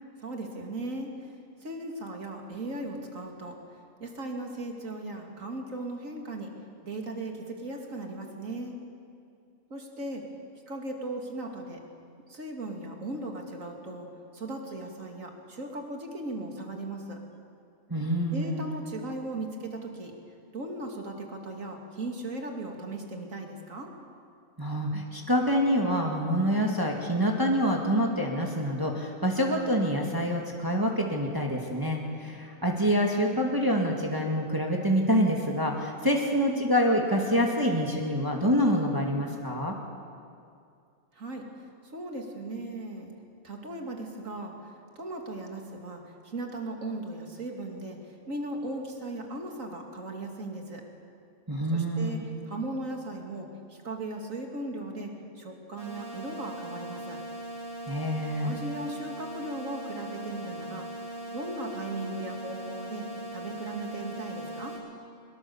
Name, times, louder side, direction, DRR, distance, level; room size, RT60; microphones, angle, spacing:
voice 1, 0.2-1.1 1.6-3.6 4.0-6.5 6.8-8.8 9.7-10.2 10.7-11.8 12.3-14.1 14.3-17.2 18.3-20.1 20.5-23.9 41.1-41.4 41.8-43.2 43.4-50.8 51.7-57.2 58.4-60.9 61.3-63.1 63.3-64.8, right 2 dB, 75° right, 2 dB, 2.9 m, -37 dB
voice 2, 17.9-18.6 24.6-39.7 51.5-52.2 57.9-58.6, equal, 15° right, 0 dB, 2.0 m, -26 dB
sound 1, 55.8-64.8, right 1 dB, 50° right, 5.8 m, -40 dB
23.0 x 21.5 x 7.2 m, 2.4 s
omnidirectional pair, 1.4 m